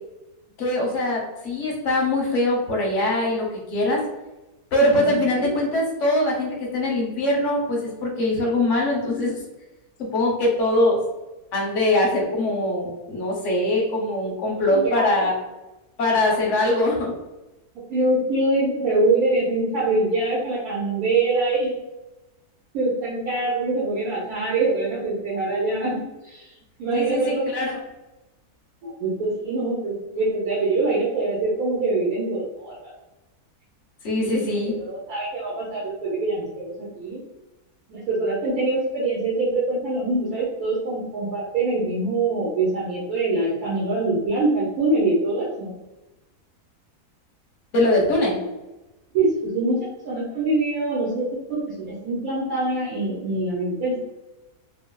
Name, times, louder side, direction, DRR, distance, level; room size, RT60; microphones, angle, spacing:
voice 1, 0.6-4.0 4.7-9.3 10.0-11.0 11.5-15.3 16.0-17.1 26.9-27.8 34.0-34.8 47.7-48.4, left 1 dB, 60° left, -2 dB, 1.0 m, -22 dB
voice 2, 4.8-5.5 14.7-15.1 17.7-21.7 22.7-26.5 26.8-27.5 28.8-32.9 34.2-37.2 37.9-45.7 49.1-49.3 49.5-54.0, right 2 dB, 70° right, -6 dB, 1.2 m, -24 dB
3.2 x 2.3 x 2.2 m, 1.0 s
omnidirectional pair, 1.6 m